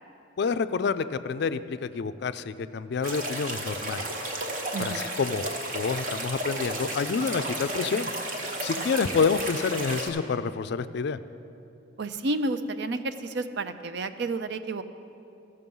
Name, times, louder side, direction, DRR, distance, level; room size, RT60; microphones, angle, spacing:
voice 1, 0.4-4.1 4.8-5.4 5.7-8.1 8.6-11.2, left 5 dB, 55° left, 13 dB, 0.3 m, -28 dB
sound 1, 3.0-10.1, right 1 dB, 45° right, 1.1 m, -33 dB
voice 2, 4.7-5.1 8.8-9.0 12.0-14.8, right 2 dB, 60° right, 10 dB, 0.5 m, -31 dB
15.5 x 6.6 x 5.4 m, 2.7 s
head